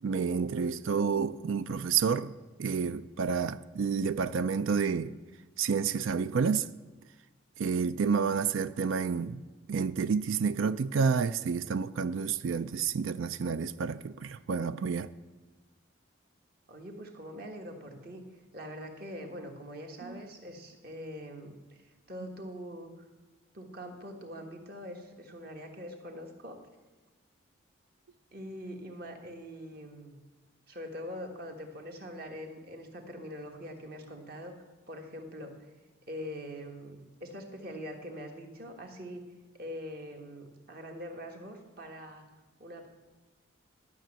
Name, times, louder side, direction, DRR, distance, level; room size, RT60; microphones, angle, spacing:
voice 1, 0.0-5.2 5.6-6.7 7.6-9.4 9.7-15.1 20.0-20.2, right 6 dB, 75° right, 0.4 m, -29 dB
voice 2, 16.7-18.2 18.5-22.9 23.5-26.6 28.3-30.2 30.7-34.5 34.9-35.7 36.1-39.2 39.5-42.3 42.6-42.9, equal, 45° right, 1.5 m, -43 dB
12.0 x 6.1 x 7.6 m
head